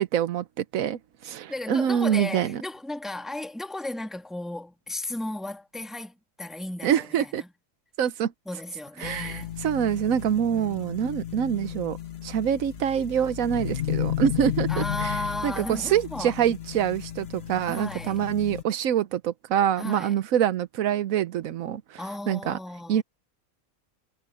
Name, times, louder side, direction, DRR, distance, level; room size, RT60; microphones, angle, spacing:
voice 1, 0.0-2.6 6.8-7.4 8.0-8.3 9.0-12.0 12.2-15.2 15.4-22.0 22.3-22.6 22.9-23.0, right 9 dB, 90° right, 1.2 m, -25 dB
voice 2, 1.5-7.5 8.4-9.5 10.4-11.0 14.7-16.4 17.7-18.3 19.8-20.2 22.0-23.0, left 2 dB, ahead, 1.5 m, -35 dB
sound 1, 9.0-18.6, left 11 dB, 50° left, 1.3 m, -34 dB
omnidirectional pair, 1.4 m